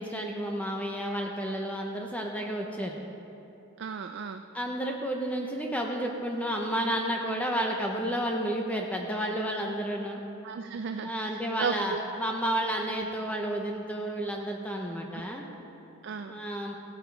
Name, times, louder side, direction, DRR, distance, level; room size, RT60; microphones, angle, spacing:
voice 1, 0.0-3.0 4.5-10.2 11.0-15.4 16.3-16.7, right 1 dB, 5° left, 1 dB, 0.7 m, -31 dB
voice 2, 3.8-4.4 10.4-11.1 11.6-12.0 16.0-16.4, right 6 dB, 55° right, 7 dB, 0.4 m, -34 dB
16.0 x 9.0 x 4.6 m, 2.8 s
head